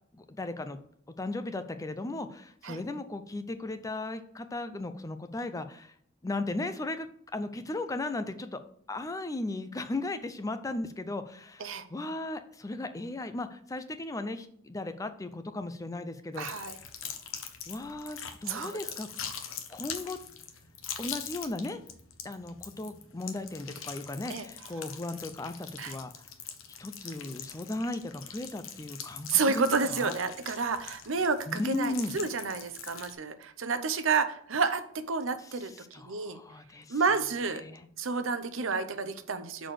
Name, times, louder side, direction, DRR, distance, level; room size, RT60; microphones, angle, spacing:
voice 1, 0.1-0.8 1.2-5.9 6.2-7.1 7.3-8.6 8.9-16.5 17.7-19.1 19.7-20.2 21.0-21.8 22.2-26.1 26.8-30.1 31.5-32.2 35.4-37.0 37.6-37.9, left 2 dB, 15° left, 10 dB, 0.4 m, -36 dB
sound 1, 16.3-33.1, left 8 dB, 70° left, 0.9 m, -43 dB
voice 2, 16.4-16.8 18.5-18.8 24.3-24.5 25.8-26.0 29.3-34.8 35.1-35.7 36.0-36.4 36.9-37.6 38.0-39.7, right 4 dB, 70° right, 10 dB, 0.7 m, -30 dB
6.4 x 4.1 x 6.4 m, 0.66 s
head